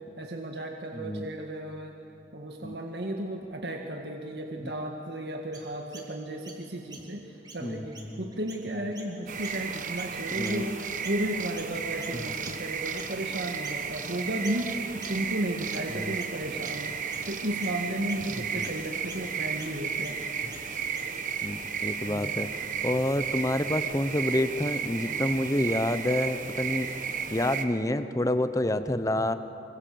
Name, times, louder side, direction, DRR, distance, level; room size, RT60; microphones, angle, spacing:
voice 1, 0.2-1.9 2.3-17.0 17.3-20.2 22.1-22.3, right 1 dB, 70° right, 2 dB, 1.8 m, -34 dB
voice 2, 0.9-1.3 2.6-2.8 7.6-7.8 8.1-8.3 10.4-10.7 12.1-12.2 15.9-16.1 21.4-26.9 27.3-29.3, left 1 dB, 20° left, 11 dB, 1.0 m, -28 dB
Chirp tweet, 5.5-11.3 11.5-21.3, right 3 dB, 25° right, 3.2 m, -49 dB
sound 1, 9.3-27.6, right 7 dB, 45° right, 1.3 m, -34 dB
26.0 x 25.5 x 7.8 m, 2.8 s
head